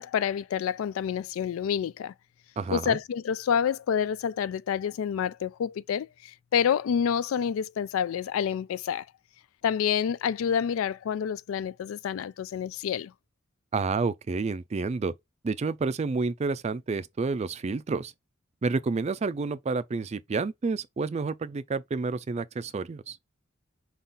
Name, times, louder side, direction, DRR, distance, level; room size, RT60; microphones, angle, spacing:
voice 1, 0.0-2.1 2.7-9.1 9.6-13.1, left 8 dB, 80° left, 0.3 m, -28 dB
voice 2, 2.6-3.0 13.7-15.1 15.4-18.1 18.6-23.2, right 4 dB, 30° right, 0.3 m, -29 dB
5.4 x 2.4 x 3.9 m
head